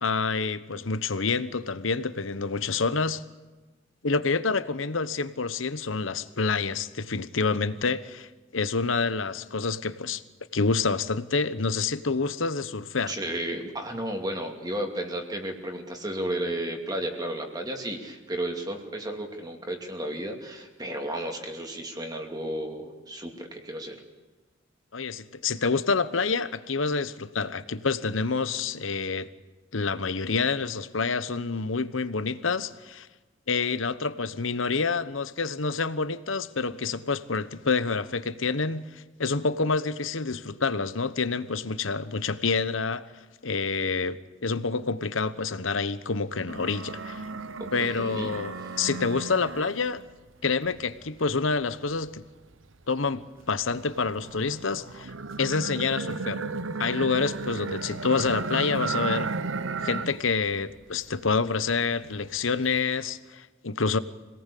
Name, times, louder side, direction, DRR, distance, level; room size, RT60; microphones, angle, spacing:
voice 1, 0.0-3.2 4.0-10.2 10.5-13.1 24.9-29.3 29.7-33.1 33.5-38.8 39.2-43.0 43.4-47.2 47.7-50.0 50.4-52.2 52.9-55.1 55.4-56.4 56.8-59.3 59.8-64.0, left 4 dB, 80° left, 1.1 m, -27 dB
voice 2, 13.1-24.0 47.8-48.3 48.6-48.9, right 1 dB, 20° right, 2.6 m, -33 dB
sound 1, 46.5-50.1 50.6-52.8 53.4-60.3 60.6-61.4 61.8-62.8, right 4 dB, 80° right, 1.0 m, -34 dB
26.0 x 18.5 x 8.5 m
head